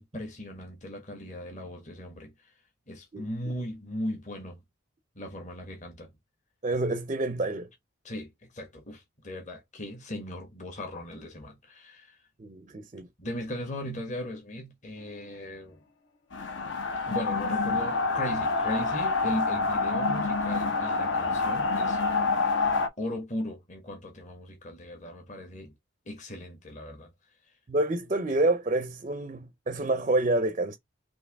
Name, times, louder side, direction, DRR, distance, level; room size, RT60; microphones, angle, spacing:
voice 1, 0.0-2.3 2.9-4.6 5.1-6.1 8.0-12.2 13.2-15.8 17.1-22.0 22.3-22.5 23.0-25.7 26.0-27.1, left 1 dB, 35° left, 1.3 m, -37 dB
voice 2, 6.6-7.7 12.4-13.1 27.7-30.8, right 2 dB, 35° right, 0.5 m, -28 dB
sound 1, 16.3-22.9, left 3 dB, 65° left, 0.8 m, -27 dB
4.4 x 2.9 x 3.4 m
head